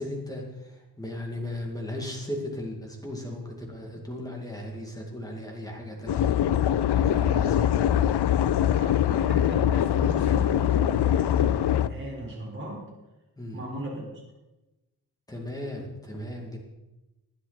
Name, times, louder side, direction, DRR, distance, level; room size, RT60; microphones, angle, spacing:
voice 1, 0.0-6.3 6.9-7.6 13.4-13.6 15.3-16.6, left 1 dB, 10° left, 0 dB, 2.3 m, -36 dB
sound 1, 6.1-11.9, left 10 dB, 90° left, 0.6 m, -23 dB
voice 2, 7.2-7.8 8.7-12.9 13.5-14.0, right 1 dB, 30° right, -3 dB, 4.7 m, -38 dB
20.0 x 9.9 x 4.2 m, 1.0 s
wide cardioid pair, 170°, 39 cm